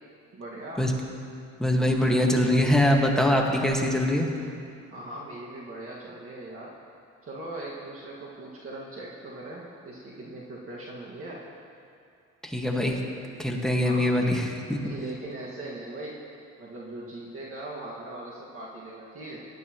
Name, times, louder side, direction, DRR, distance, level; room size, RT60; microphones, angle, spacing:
voice 1, 0.3-0.9 4.9-6.7 7.2-11.4 13.8-14.2 14.8-16.2 16.6-19.5, right 2 dB, 45° right, -5 dB, 1.9 m, -40 dB
voice 2, 1.6-4.3 12.4-13.0 13.4-14.8, left 1 dB, ahead, -1 dB, 1.7 m, -23 dB
19.0 x 11.5 x 3.1 m, 2.5 s
cardioid pair, 90°, 30 cm